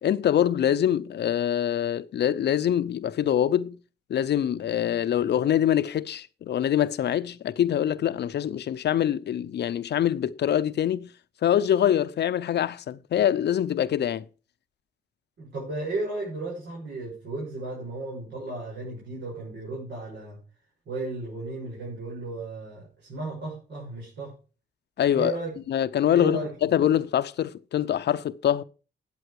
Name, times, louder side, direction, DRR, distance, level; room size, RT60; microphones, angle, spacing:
voice 1, 0.0-3.8 4.1-11.1 11.4-14.2 25.0-25.3 25.7-28.6, left 10 dB, 70° left, 0.6 m, -24 dB
voice 2, 15.4-20.4 20.9-24.3 25.1-25.5 26.1-26.5, right 2 dB, 75° right, 6.6 m, -34 dB
13.0 x 8.5 x 4.8 m
cardioid pair, 85°, 18 cm